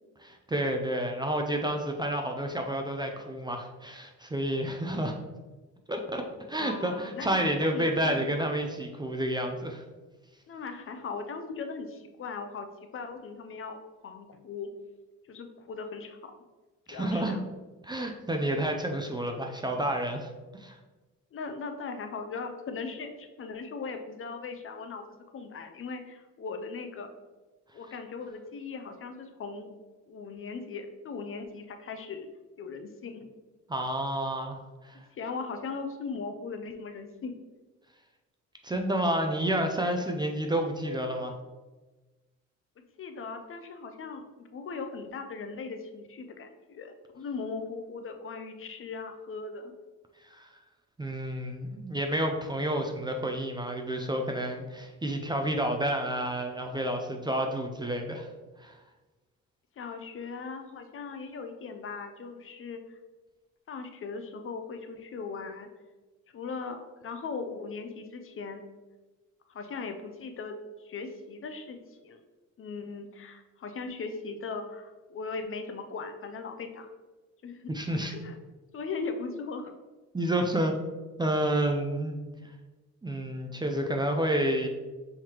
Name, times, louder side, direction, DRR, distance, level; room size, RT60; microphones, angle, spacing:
voice 1, 0.2-5.1 5.9-9.8 16.9-17.3 17.8-20.8 33.7-35.0 38.6-41.3 50.3-50.5 51.0-58.3 58.6-58.8 77.7-78.1 80.1-80.8 81.2-82.2 83.0-84.7, right 1 dB, 15° right, 3 dB, 0.4 m, -30 dB
voice 2, 6.5-7.3 7.6-8.3 10.5-12.7 12.9-14.7 15.3-16.3 16.9-17.5 21.3-25.0 25.3-27.1 27.7-29.7 30.1-32.3 32.6-33.3 35.1-37.3 43.0-49.7 59.8-63.0 63.7-65.7 66.3-68.6 69.5-72.2 72.6-76.9 77.4-77.7 78.1-78.4 78.7-79.7, left 4 dB, 45° left, 6 dB, 0.6 m, -39 dB
5.7 x 3.1 x 2.9 m, 1.2 s
cardioid pair, 90°, 30 cm